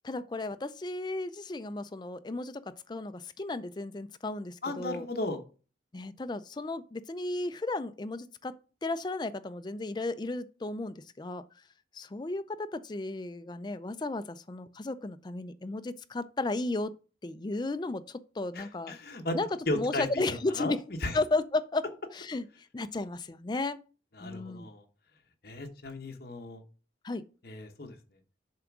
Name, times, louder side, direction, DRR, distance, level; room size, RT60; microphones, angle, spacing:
voice 1, 0.0-5.1 5.9-8.5 8.8-11.4 11.9-16.9 17.2-19.0 19.3-19.5 19.7-20.8 21.1-21.8 22.1-22.5 22.7-23.8 24.2-24.7 27.0-27.2, left 2 dB, 25° left, 0.4 m, -34 dB
voice 2, 4.6-5.4 18.5-19.4 19.7-20.7 21.0-21.2 24.2-24.8 25.4-26.6 27.4-28.0, left 2 dB, 55° left, 1.1 m, -35 dB
7.4 x 3.5 x 6.0 m
head